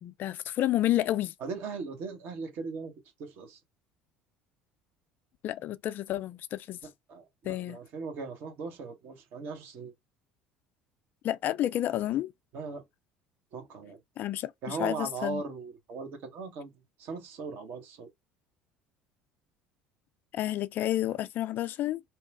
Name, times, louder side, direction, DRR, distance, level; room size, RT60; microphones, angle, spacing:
voice 1, 0.0-1.3 5.4-6.8 7.4-7.8 11.2-12.3 14.2-15.4 20.3-22.0, left 13 dB, 55° left, 0.3 m, -30 dB
voice 2, 1.4-2.9 3.2-3.6 6.8-9.9 12.5-12.8 13.5-14.0 14.6-16.7 17.0-18.1, right 4 dB, 60° right, 1.1 m, -38 dB
2.9 x 2.3 x 2.5 m
hypercardioid pair, 65°, 4 cm